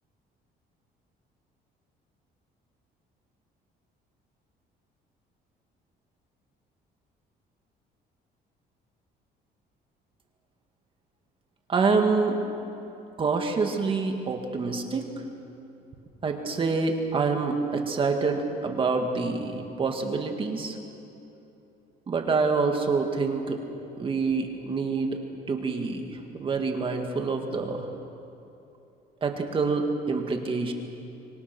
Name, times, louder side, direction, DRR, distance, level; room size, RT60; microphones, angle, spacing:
voice 1, 11.7-12.4 13.2-15.1 16.2-20.8 22.1-23.6 24.0-25.2 25.5-27.9 29.2-30.7, right 4 dB, 30° right, 3 dB, 2.1 m, -26 dB
26.0 x 24.5 x 6.2 m, 2.8 s
cardioid pair, 155°, 18 cm